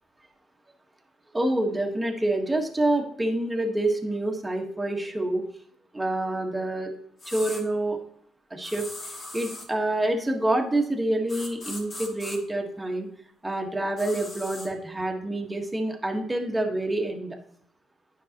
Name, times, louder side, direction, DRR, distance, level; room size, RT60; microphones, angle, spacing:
voice 1, 1.3-5.4 5.9-6.9 7.3-8.0 8.5-8.8 9.3-13.1 13.4-17.4, right 1 dB, 15° right, 2 dB, 1.3 m, -27 dB
sound 1, 7.2-7.6 8.6-9.7 11.3-12.4 14.0-14.7, left 2 dB, 45° left, 2.5 m, -39 dB
10.0 x 5.5 x 2.9 m, 0.65 s
cardioid pair, 90°, 0 cm